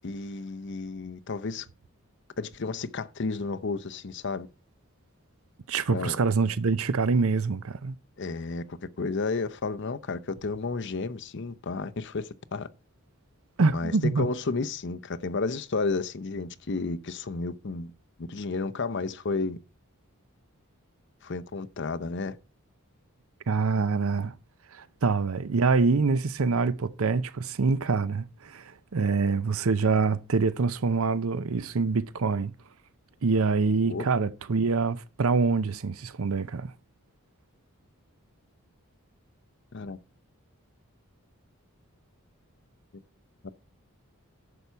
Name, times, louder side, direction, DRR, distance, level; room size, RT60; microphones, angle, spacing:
voice 1, 0.0-1.7 2.4-4.5 5.9-6.2 8.2-12.7 13.7-17.9 18.3-19.6 21.2-22.3 33.8-34.1 39.7-40.0 43.4-43.5, left 3 dB, 55° left, 0.7 m, -32 dB
voice 2, 5.7-8.0 13.6-14.3 23.5-24.3 24.7-32.5 33.2-36.7, right 4 dB, 75° right, 0.6 m, -25 dB
11.0 x 7.0 x 4.5 m
head